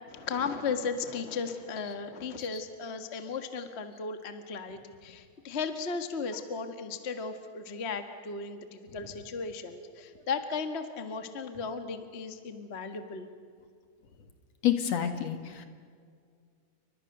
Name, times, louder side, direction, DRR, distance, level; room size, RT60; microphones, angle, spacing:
voice 1, 0.1-13.3, left 5 dB, 30° left, 7 dB, 1.3 m, -36 dB
voice 2, 14.6-15.6, left 10 dB, 60° left, 7 dB, 2.8 m, -28 dB
29.5 x 24.5 x 6.8 m, 2.2 s
omnidirectional pair, 3.5 m